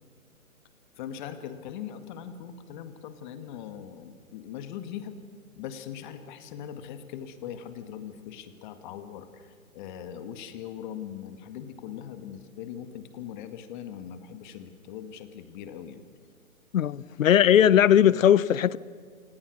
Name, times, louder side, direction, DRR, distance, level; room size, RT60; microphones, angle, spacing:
voice 1, 1.0-5.2 5.6-16.0, left 9 dB, 35° left, 1.9 m, -40 dB
voice 2, 16.7-18.8, left 10 dB, 65° left, 0.9 m, -19 dB
29.5 x 18.5 x 6.4 m
hypercardioid pair, 145°, 43 cm